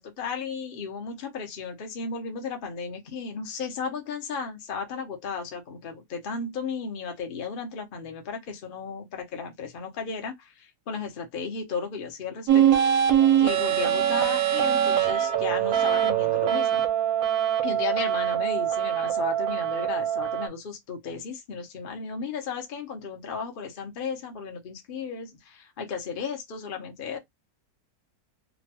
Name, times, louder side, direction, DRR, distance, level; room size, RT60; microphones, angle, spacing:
voice 1, 0.0-13.0 13.4-16.8 17.6-27.2, left 5 dB, 70° left, 0.5 m, -35 dB
sound 1, 12.5-20.5, right 10 dB, 70° right, 0.9 m, -23 dB
3.0 x 2.2 x 2.7 m
omnidirectional pair, 2.0 m